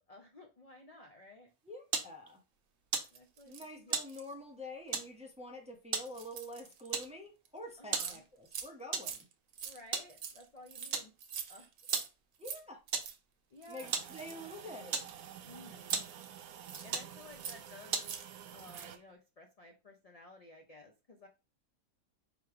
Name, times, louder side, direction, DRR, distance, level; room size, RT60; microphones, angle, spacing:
voice 1, 0.1-1.5 3.1-4.0 7.8-8.2 9.6-11.1 11.5-11.7 13.5-13.9 15.4-16.0 16.8-18.1 18.5-21.3, left 1 dB, 50° left, 0.4 m, -55 dB
sound 1, 1.5-18.4, right 5 dB, 50° right, 0.9 m, -41 dB
voice 2, 1.6-2.4 3.5-9.2 12.4-12.8 13.7-15.0, left 1 dB, 5° right, 0.5 m, -47 dB
sound 2, 3.0-4.3 4.9-5.1 6.1-7.1 7.5-7.6 7.7-8.2 8.5-8.7 8.9-12.1 12.4-12.6 12.9-13.2 13.6-15.4 15.8-16.9 17.3-17.7 18.0-18.3 18.6-18.9, right 7 dB, 70° right, 1.1 m, -45 dB
sound 3, 13.8-19.0, right 9 dB, 90° right, 1.1 m, -50 dB
3.5 x 3.0 x 4.8 m
omnidirectional pair, 1.5 m